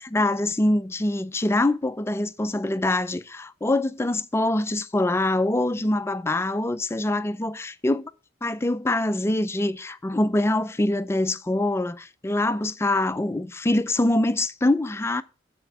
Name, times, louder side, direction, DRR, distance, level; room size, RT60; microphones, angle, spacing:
voice 1, 0.1-8.0 8.4-15.2, left 1 dB, 15° left, 0.4 m, -24 dB
7.9 x 4.3 x 6.0 m
head